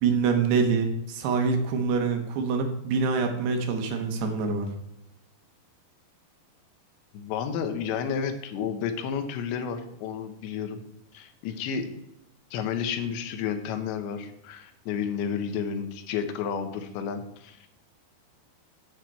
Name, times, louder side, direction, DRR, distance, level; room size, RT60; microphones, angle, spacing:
voice 1, 0.0-4.7, right 5 dB, 75° right, 5 dB, 3.2 m, -25 dB
voice 2, 7.1-10.8 11.1-11.9 12.5-17.7, left 7 dB, 85° left, 7 dB, 3.2 m, -31 dB
8.8 x 7.7 x 4.4 m, 0.80 s
omnidirectional pair, 5.0 m